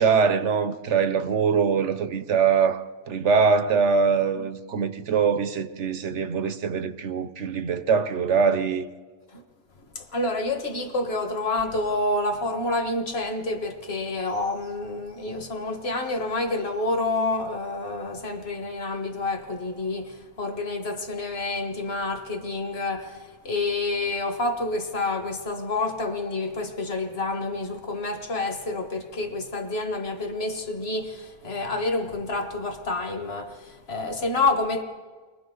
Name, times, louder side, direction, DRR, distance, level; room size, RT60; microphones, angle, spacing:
voice 1, 0.0-8.8, right 6 dB, 55° right, 1.1 m, -23 dB
voice 2, 10.0-34.8, left 2 dB, 40° left, 1.8 m, -28 dB
30.0 x 23.0 x 3.9 m
omnidirectional pair, 1.6 m